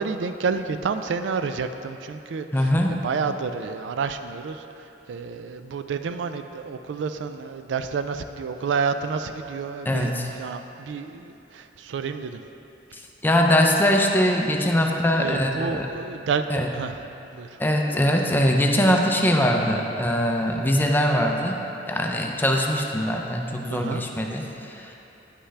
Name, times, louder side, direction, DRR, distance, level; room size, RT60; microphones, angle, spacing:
voice 1, 0.0-2.5 2.9-4.6 5.1-10.1 10.4-12.4 15.2-16.9 17.3-17.5 23.7-24.0, right 5 dB, 85° right, 9 dB, 0.3 m, -29 dB
voice 2, 2.5-3.0 9.9-10.3 12.9-15.9 16.5-16.7 17.6-21.6 21.9-24.9, equal, 10° left, 1 dB, 0.5 m, -22 dB
9.7 x 5.6 x 3.3 m, 2.9 s
head